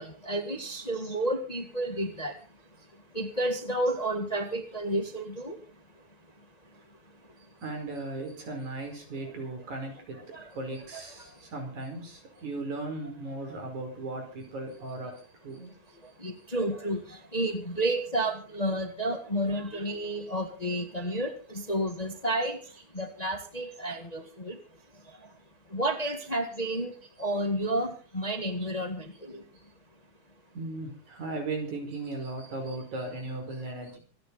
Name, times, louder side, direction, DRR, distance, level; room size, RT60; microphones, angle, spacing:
voice 1, 0.0-2.4 2.8-5.7 5.9-6.1 6.4-6.7 7.3-7.4 10.3-10.5 11.2-11.5 16.0-24.6 24.9-25.4 25.7-29.4, right 1 dB, 20° left, 5 dB, 1.4 m, -31 dB
voice 2, 7.6-15.1 15.4-15.8 18.2-18.3 21.1-21.2 30.5-34.0, right 2 dB, 90° right, 4 dB, 6.4 m, -37 dB
26.0 x 9.8 x 4.1 m, 0.39 s
omnidirectional pair, 3.3 m